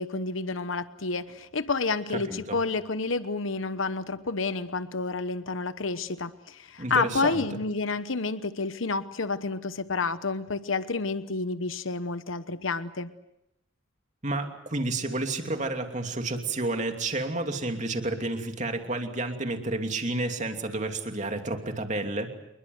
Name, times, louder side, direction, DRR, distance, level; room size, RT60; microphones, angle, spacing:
voice 1, 0.0-13.1, left 4 dB, 75° left, 13 dB, 1.1 m, -29 dB
voice 2, 2.1-2.6 6.8-7.5 14.2-22.3, right 2 dB, 35° right, 5 dB, 2.8 m, -30 dB
28.0 x 21.5 x 7.9 m, 0.84 s
head